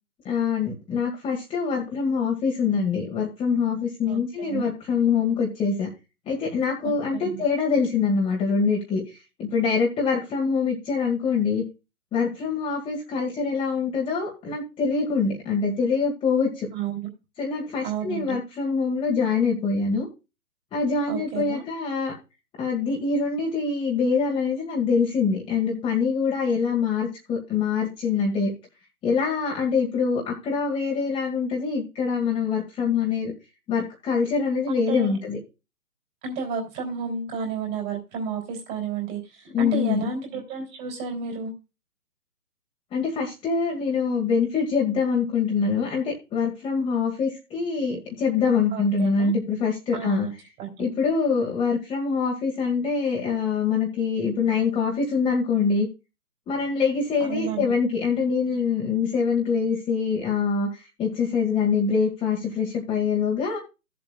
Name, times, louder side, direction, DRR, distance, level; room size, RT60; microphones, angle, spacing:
voice 1, 0.3-5.9 6.3-9.0 9.4-11.6 12.1-16.7 17.4-20.1 20.7-22.1 22.6-28.5 29.0-33.3 33.7-35.4 39.5-40.1 42.9-50.3 50.8-55.9 56.5-60.7 61.0-63.6, left 5 dB, 10° left, -2 dB, 2.0 m, -24 dB
voice 2, 4.1-4.7 6.8-7.4 16.7-17.1 17.8-18.4 21.1-21.7 34.7-35.2 36.2-41.5 48.7-49.3 49.9-50.3 50.6-50.8 57.2-57.7, right 6 dB, 20° right, 0 dB, 3.4 m, -32 dB
16.5 x 7.6 x 2.4 m, 0.29 s
figure-of-eight pair, 135°, 46 cm